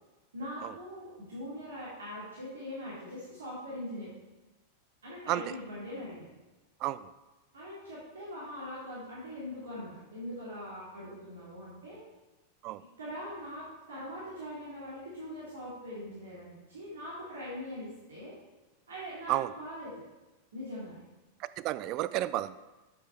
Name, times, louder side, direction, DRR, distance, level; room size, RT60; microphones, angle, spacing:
voice 1, 0.3-4.1 5.0-6.3 7.5-12.0 13.0-18.3 18.9-20.1 20.5-21.0, left 1 dB, 70° right, -8 dB, 2.9 m, -42 dB
voice 2, 21.4-22.6, right 15 dB, 40° right, 15 dB, 0.4 m, -32 dB
9.0 x 7.4 x 4.5 m, 1.1 s
figure-of-eight pair, 90°, 0 cm